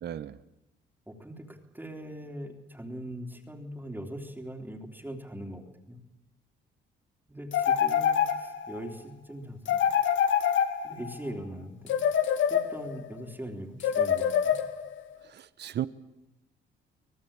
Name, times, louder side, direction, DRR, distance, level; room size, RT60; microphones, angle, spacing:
voice 1, 0.0-0.4 15.3-15.9, right 11 dB, 60° right, 16 dB, 1.0 m, -35 dB
voice 2, 1.1-6.0 7.3-9.8 10.8-14.6, right 1 dB, 10° right, 3 dB, 3.2 m, -41 dB
sound 1, 7.5-8.8 9.7-11.2 11.9-13.1 13.8-15.0, left 8 dB, 75° left, 2.2 m, -26 dB
25.5 x 18.0 x 8.7 m, 0.94 s
cardioid pair, 90°, 20 cm